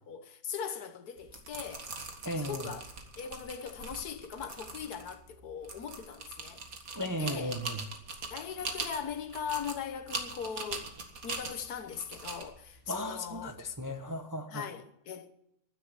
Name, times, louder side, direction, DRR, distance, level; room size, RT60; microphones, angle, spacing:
voice 1, 0.0-1.9 2.4-2.9 3.2-6.6 7.2-7.6 8.3-10.9 11.2-13.5 13.9-14.0 14.5-15.3, left 7 dB, 65° left, 1.5 m, -40 dB
sound 1, 1.2-13.9, right 3 dB, 55° right, 2.1 m, -42 dB
voice 2, 2.2-2.7 6.9-7.9 12.9-14.7, equal, 15° right, 0.7 m, -36 dB
12.0 x 9.9 x 8.3 m
omnidirectional pair, 1.8 m